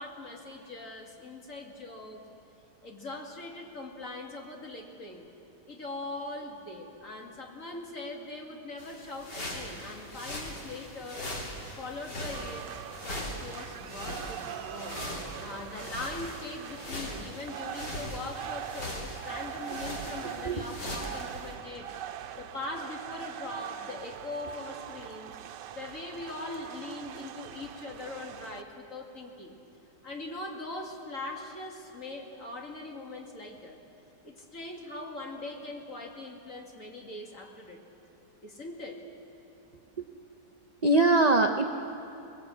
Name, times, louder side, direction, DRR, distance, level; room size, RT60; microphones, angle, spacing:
voice 1, 0.0-2.2 2.8-5.3 5.7-11.3 11.7-12.7 13.0-15.0 15.4-21.9 22.4-25.4 25.7-29.5 30.0-33.8 34.2-37.8 38.4-39.0, left 2 dB, 50° left, 0 dB, 2.8 m, -41 dB
sound 1, 8.8-21.5, left 1 dB, 75° left, 3.9 m, -40 dB
sound 2, 12.3-28.6, right 10 dB, 90° right, 1.4 m, -42 dB
voice 2, 40.8-41.7, right 2 dB, 45° right, 3 dB, 0.5 m, -22 dB
23.5 x 20.0 x 8.3 m, 2.8 s
omnidirectional pair, 1.8 m